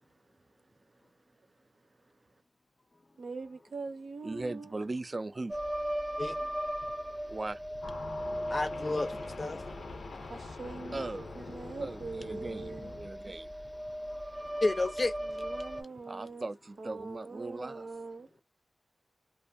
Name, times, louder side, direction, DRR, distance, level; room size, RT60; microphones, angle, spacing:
voice 1, 3.2-4.7 6.0-6.4 6.8-6.9 10.3-11.0 11.3-12.9 15.2-16.5 16.8-18.3, right 3 dB, 85° right, 0.7 m, -43 dB
voice 2, 4.2-5.6 6.8-6.9 7.3-7.6 10.9-11.4 11.8-13.7 16.1-17.9, right 2 dB, 40° right, 0.3 m, -39 dB
sound 1, 5.5-15.8, equal, 15° right, 0.7 m, -38 dB
voice 3, 6.2-6.5 8.5-9.6 14.4-15.5, left 2 dB, 40° left, 0.4 m, -32 dB
sound 2, 7.8-13.1, left 3 dB, 90° left, 0.6 m, -44 dB
2.5 x 2.3 x 2.5 m
wide cardioid pair, 85°, 0 cm